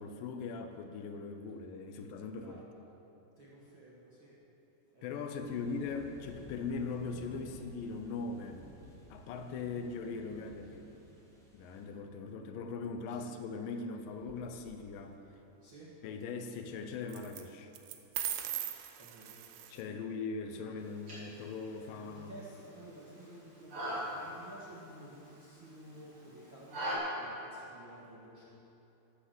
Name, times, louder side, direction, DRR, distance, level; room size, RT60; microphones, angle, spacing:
voice 1, 0.0-2.6 5.0-8.7 9.1-10.9 11.5-15.1 16.0-17.7 19.7-22.4, left 4 dB, 90° left, 5 dB, 1.9 m, -40 dB
voice 2, 2.3-2.7 3.4-4.4 4.9-5.9 13.1-13.3 15.6-15.9 19.0-19.4 19.9-20.1 21.8-28.4, right 1 dB, 55° right, -7 dB, 1.4 m, -53 dB
sound 1, 5.4-11.9, right 1 dB, ahead, 1.7 m, -54 dB
sound 2, 14.2-14.8 17.1-17.4 17.7-19.8, right 12 dB, 90° right, 1.9 m, -39 dB
sound 3, 20.8-26.9, equal, 30° right, 4.2 m, -43 dB
12.5 x 9.9 x 7.7 m, 2.9 s
omnidirectional pair, 5.0 m